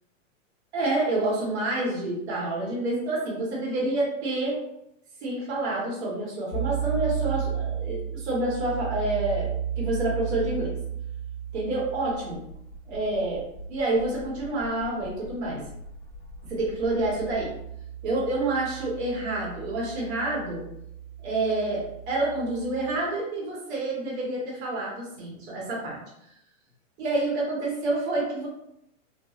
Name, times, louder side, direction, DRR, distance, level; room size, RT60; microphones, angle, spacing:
voice 1, 0.7-4.6 5.2-10.8 11.5-12.4 12.9-15.6 16.5-17.5 18.0-20.6 21.2-26.0 27.0-28.5, right 2 dB, 55° right, -4 dB, 1.0 m, -28 dB
sound 1, 6.5-23.0, right 8 dB, 50° left, 0.5 m, -35 dB
3.0 x 2.2 x 2.3 m, 0.79 s
supercardioid pair, 165°, 40 cm